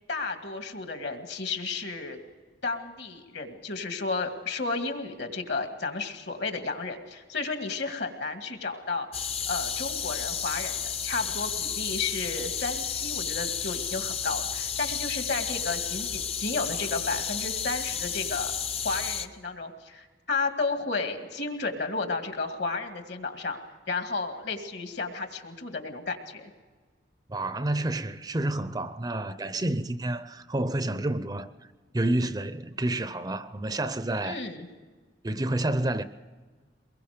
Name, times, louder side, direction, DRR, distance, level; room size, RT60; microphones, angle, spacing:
voice 1, 0.1-2.2 2.6-9.1 9.5-18.5 18.8-23.6 23.9-26.5 34.2-34.7, left 4 dB, 65° left, 2.1 m, -32 dB
sound 1, 9.1-19.3, left 7 dB, 30° left, 0.6 m, -32 dB
voice 2, 27.3-31.5 31.9-34.4 35.2-36.0, right 1 dB, 20° right, 0.5 m, -29 dB
23.5 x 21.5 x 5.1 m
head